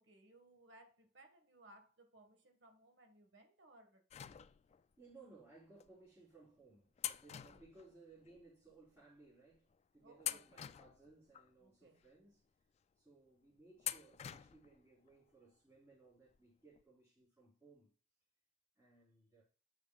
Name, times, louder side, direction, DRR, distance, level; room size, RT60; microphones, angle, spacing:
voice 1, 0.0-4.0 7.3-7.6 10.0-10.6 11.6-12.0, right 1 dB, 70° right, 1.6 m, -64 dB
sound 1, 4.1-4.9 5.8-5.9 7.0-8.4 8.7-8.8 9.5-9.8 10.2-11.5 12.0-12.1 13.8-14.8 15.1-15.2 16.3-16.4 16.7-16.8, left 11 dB, 35° left, 0.3 m, -46 dB
voice 2, 5.0-12.4 13.0-17.9 18.8-19.4, right 3 dB, 15° right, 3.6 m, -63 dB
9.1 x 6.7 x 2.4 m
head